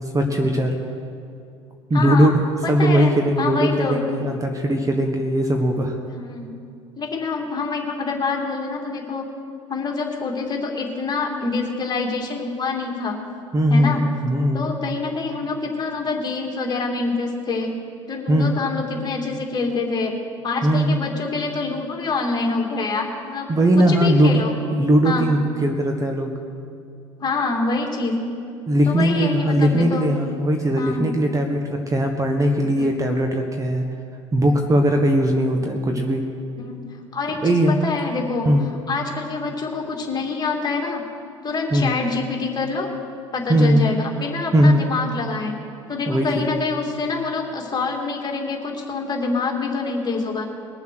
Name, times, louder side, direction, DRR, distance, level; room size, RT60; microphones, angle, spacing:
voice 1, 0.1-0.7 1.9-2.4 2.7-5.9 13.5-14.7 18.3-18.6 20.6-21.0 23.5-24.4 24.7-26.3 28.7-33.8 34.3-36.2 37.4-37.8 38.4-38.7 41.7-42.0 43.5-43.9 44.5-44.8 46.1-46.5, equal, 20° right, 3 dB, 1.4 m, -19 dB
voice 2, 1.9-2.3 2.6-4.1 6.2-6.6 7.0-9.3 9.7-13.2 13.7-14.0 14.5-17.7 18.1-20.1 20.4-23.5 23.9-24.5 25.0-25.4 27.2-28.1 28.9-30.1 30.8-31.2 32.7-32.9 34.4-34.6 36.7-36.8 37.1-38.5 38.9-41.0 41.4-42.9 43.3-45.5 45.9-50.4, left 4 dB, 25° left, 0 dB, 2.8 m, -26 dB
21.0 x 7.2 x 6.4 m, 2.5 s
figure-of-eight pair, 70°, 16 cm